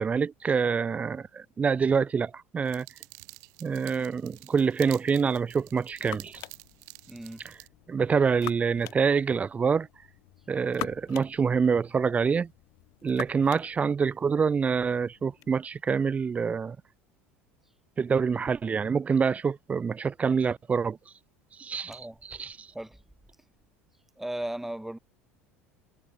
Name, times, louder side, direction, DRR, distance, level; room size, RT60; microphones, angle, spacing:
voice 1, 0.0-2.9 3.6-6.4 7.4-7.5 7.9-9.9 10.5-12.5 13.0-16.8 18.0-21.0 21.6-21.9 22.3-22.6, right 6 dB, 20° right, 0.4 m, -26 dB
sound 1, 2.6-7.7, right 31 dB, 55° right, 7.1 m, -49 dB
sound 2, 5.4-15.5, left 24 dB, 50° left, 7.0 m, -45 dB
voice 2, 7.1-7.4 21.8-22.2 22.7-23.0 24.2-25.0, right 1 dB, 5° right, 3.2 m, -36 dB
figure-of-eight pair, 70°, 7 cm